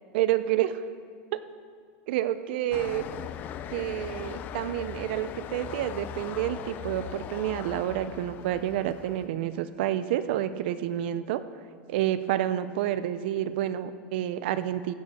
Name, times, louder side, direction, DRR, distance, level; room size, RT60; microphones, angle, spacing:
voice 1, 0.1-0.8 1.3-1.4 2.1-3.0 3.7-11.4 11.9-14.9, right 12 dB, 60° right, 13 dB, 0.6 m, -29 dB
sound 1, 2.7-9.3, left 9 dB, 30° left, 0.4 m, -39 dB
15.5 x 9.6 x 4.3 m, 2.1 s
supercardioid pair, 170°, 6 cm